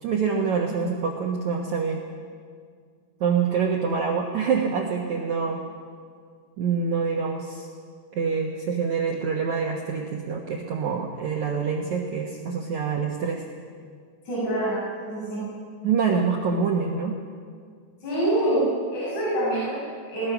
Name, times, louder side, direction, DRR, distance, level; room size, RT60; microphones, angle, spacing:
voice 1, 0.0-2.0 3.2-5.6 6.6-7.7 8.1-13.4 15.8-17.2, right 5 dB, 65° right, 0 dB, 2.0 m, -26 dB
voice 2, 14.2-14.8 15.0-15.4 18.0-18.6 18.9-20.3, right 1 dB, 40° left, -8 dB, 7.8 m, -26 dB
22.0 x 19.5 x 6.1 m, 2.1 s
omnidirectional pair, 5.2 m